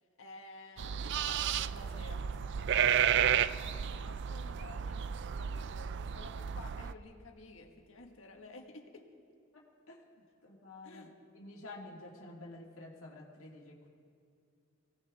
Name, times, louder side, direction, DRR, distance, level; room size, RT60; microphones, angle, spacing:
voice 1, 0.2-9.1 10.8-11.1, left 2 dB, 70° left, 3 dB, 1.6 m, -53 dB
sound 1, 0.8-6.9, right 9 dB, 60° right, 0.4 m, -32 dB
voice 2, 9.5-10.0 10.4-11.1 11.3-13.9, left 2 dB, 90° left, -3 dB, 2.0 m, -50 dB
24.5 x 17.0 x 3.5 m, 2.3 s
head